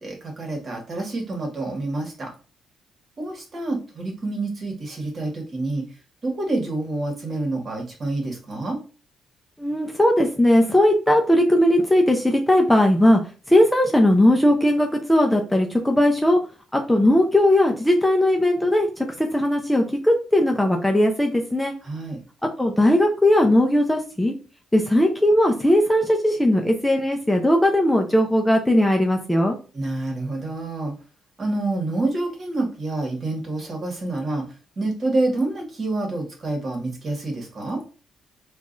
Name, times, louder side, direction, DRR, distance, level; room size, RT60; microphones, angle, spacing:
voice 1, 0.0-2.3 3.2-5.8 6.2-8.8 21.8-22.2 29.7-30.9 31.4-34.5 34.8-37.8, right 2 dB, 40° right, 1 dB, 1.5 m, -27 dB
voice 2, 9.6-13.2 13.5-16.4 16.7-18.9 19.2-21.7 22.6-24.3 24.7-29.6, left 1 dB, 5° left, 2 dB, 0.5 m, -18 dB
4.5 x 2.4 x 2.5 m, 0.36 s
cardioid pair, 90°, 0 cm